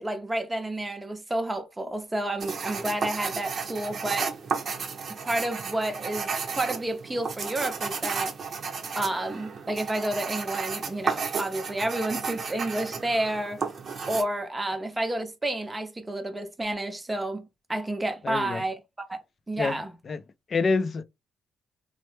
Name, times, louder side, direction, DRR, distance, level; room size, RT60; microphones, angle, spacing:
voice 1, 0.0-4.4 5.1-8.3 9.0-13.7 14.1-19.2 19.5-19.9, right 1 dB, 15° right, 0.7 m, -30 dB
sound 1, 2.4-14.2, right 5 dB, 50° right, 0.7 m, -33 dB
voice 2, 18.2-18.6 19.6-19.8 20.1-20.2 20.5-21.0, left 4 dB, 45° left, 0.4 m, -26 dB
3.2 x 2.0 x 3.1 m
cardioid pair, 90°, 0 cm